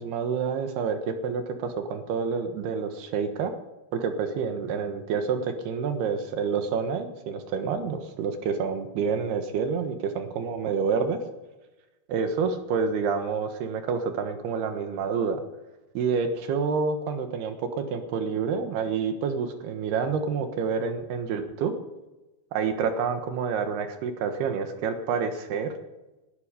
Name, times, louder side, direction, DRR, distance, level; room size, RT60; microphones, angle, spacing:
voice 1, 0.0-3.5 3.9-11.2 12.1-15.4 15.9-21.7 22.5-25.7, right 5 dB, 75° right, 7 dB, 3.3 m, -28 dB
20.0 x 12.5 x 5.1 m, 1.1 s
omnidirectional pair, 4.8 m